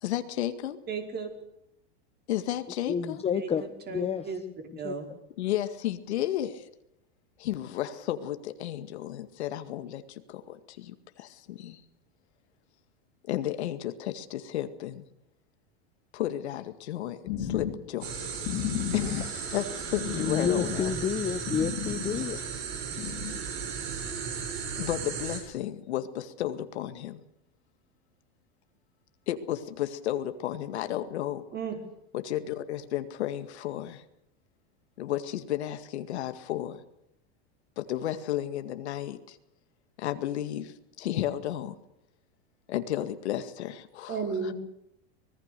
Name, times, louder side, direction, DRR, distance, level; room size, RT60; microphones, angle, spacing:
voice 1, 0.0-0.8 2.3-3.2 5.4-6.7 7.4-11.8 13.3-15.0 16.1-18.2 18.9-20.9 24.8-27.2 29.3-31.4 32.1-34.0 35.0-36.8 37.8-39.4 40.0-41.7 42.7-44.2, left 12 dB, 85° left, 9 dB, 2.1 m, -33 dB
voice 2, 0.9-1.4 3.3-3.5 3.9-4.4 4.8-5.1 31.5-31.8 44.1-44.5, right 5 dB, 30° right, 4 dB, 4.9 m, -33 dB
voice 3, 2.9-4.3 4.8-4.9 20.1-22.4, left 7 dB, 20° left, 10 dB, 0.9 m, -30 dB
sound 1, 17.3-22.7 22.9-23.4, left 10 dB, 70° left, 3.8 m, -34 dB
sound 2, 18.0-25.4, right 6 dB, 55° right, 7.4 m, -35 dB
24.5 x 19.5 x 6.9 m, 0.80 s
supercardioid pair, 130°, 32 cm